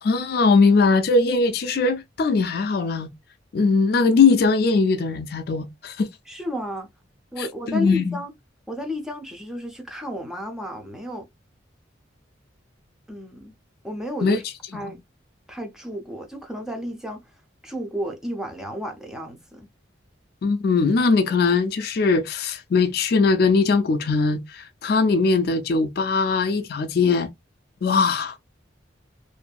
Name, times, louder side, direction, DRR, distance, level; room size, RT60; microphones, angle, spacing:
voice 1, 0.0-3.1 3.5-6.1 7.4-8.2 14.2-14.4 20.4-27.3 27.8-28.4, left 4 dB, 55° left, 0.4 m, -20 dB
voice 2, 6.3-6.9 7.3-8.3 8.7-11.2 13.1-13.5 13.8-14.4 14.7-15.0 15.5-19.7, equal, 5° right, 0.6 m, -32 dB
2.6 x 2.5 x 2.2 m
head